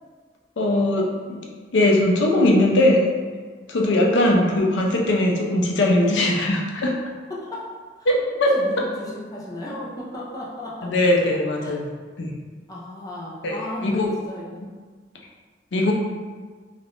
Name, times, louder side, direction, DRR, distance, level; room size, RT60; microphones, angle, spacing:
voice 1, 0.6-1.5 1.7-3.1 3.7-7.0 8.1-8.6 10.8-11.8 12.2-12.3 13.4-14.1 15.7-15.9, left 1 dB, 85° left, 0 dB, 0.5 m, -20 dB
voice 2, 3.8-4.7 7.3-7.7 8.5-10.9 11.6-11.8 12.7-14.6, left 1 dB, 20° left, -5 dB, 0.4 m, -33 dB
2.5 x 2.4 x 3.4 m, 1.5 s
head